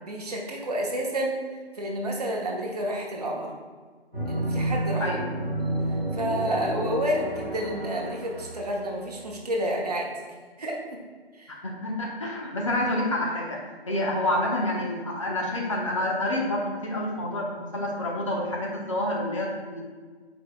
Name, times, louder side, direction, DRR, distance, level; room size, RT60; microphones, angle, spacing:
voice 1, 0.0-1.4 1.7-3.5 4.3-5.2 6.1-10.1 10.6-11.0 11.4-11.5, right 1 dB, 40° right, -1 dB, 1.0 m, -30 dB
sound 1, 4.1-9.1, right 1 dB, 5° left, 0.8 m, -30 dB
voice 2, 11.6-19.8, left 1 dB, 30° left, -2 dB, 1.0 m, -28 dB
8.1 x 4.9 x 2.4 m, 1.5 s
figure-of-eight pair, 155°, 32 cm